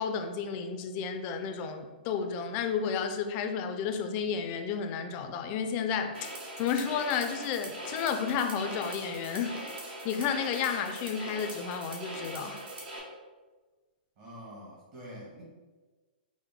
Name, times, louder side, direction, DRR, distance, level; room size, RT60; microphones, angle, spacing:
voice 1, 0.0-6.3 6.6-9.6 10.0-12.6, left 6 dB, 30° left, 6 dB, 0.4 m, -32 dB
sound 1, 6.1-13.0, right 1 dB, 70° right, 1.1 m, -41 dB
voice 2, 14.2-15.4, equal, 40° right, -5 dB, 1.4 m, -46 dB
4.7 x 2.1 x 3.4 m, 1.3 s
hypercardioid pair, 145°, 5 cm